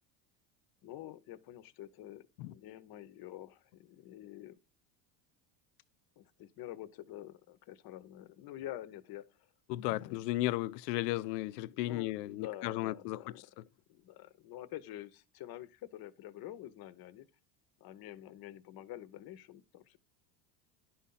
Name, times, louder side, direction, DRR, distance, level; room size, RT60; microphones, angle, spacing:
voice 1, 0.8-4.6 6.2-9.5 10.0-10.3 11.2-13.5 13.9-17.3 17.8-20.0, left 13 dB, 50° left, 1.0 m, -48 dB
voice 2, 9.7-13.2, left 16 dB, 85° left, 0.6 m, -34 dB
11.0 x 4.2 x 3.9 m
supercardioid pair, 100°, 47 cm